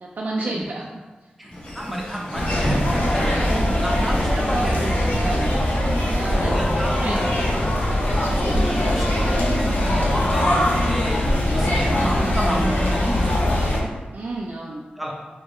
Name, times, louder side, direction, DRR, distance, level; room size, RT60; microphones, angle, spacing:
voice 1, 0.0-0.9 1.2-1.3 4.3-5.5 6.1-6.6 7.0-7.3 8.0-8.6 8.9-9.3 14.1-14.8, right 2 dB, 60° right, -3 dB, 0.4 m, -32 dB
voice 2, 1.4-4.8 5.2-5.4 6.3-7.4 8.1-11.2 11.5-13.6 15.0-15.1, equal, 5° right, -3 dB, 0.9 m, -30 dB
Laughter / Walk footsteps, 1.5-9.0, left 1 dB, 40° left, 1.3 m, -34 dB
sound 1, 2.3-13.8, left 1 dB, 65° left, 0.9 m, -21 dB
sound 2, 2.6-7.3 7.6-8.9, right 1 dB, 15° left, 1.4 m, -34 dB
4.1 x 3.5 x 3.1 m, 1.2 s
wide cardioid pair, 95°, 3 cm